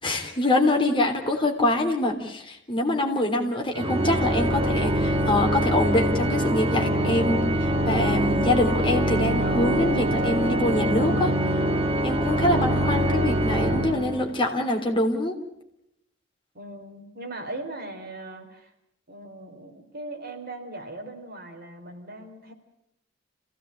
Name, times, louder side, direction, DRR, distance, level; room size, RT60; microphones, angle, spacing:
voice 1, 0.0-11.4 12.0-15.3, left 1 dB, 25° left, 2 dB, 3.4 m, -25 dB
Organ, 3.7-14.5, right 1 dB, 30° right, 1.7 m, -24 dB
voice 2, 16.5-18.7 19.1-22.5, right 2 dB, 50° right, 2 dB, 4.4 m, -39 dB
27.5 x 16.5 x 8.7 m, 0.79 s
head